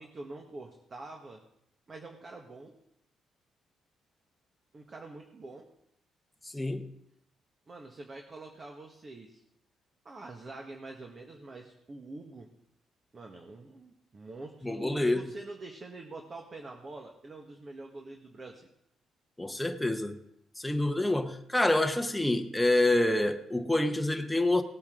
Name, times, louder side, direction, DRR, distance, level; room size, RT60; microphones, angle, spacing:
voice 1, 0.0-1.4 1.9-2.7 4.7-5.7 7.7-9.4 10.0-12.5 13.1-18.7, right 2 dB, 35° right, 1.5 m, -45 dB
voice 2, 6.4-6.9 14.6-15.2 19.4-20.2 20.6-24.6, left 1 dB, 5° left, 1.0 m, -27 dB
18.5 x 8.7 x 3.8 m
cardioid pair, 90°, 0 cm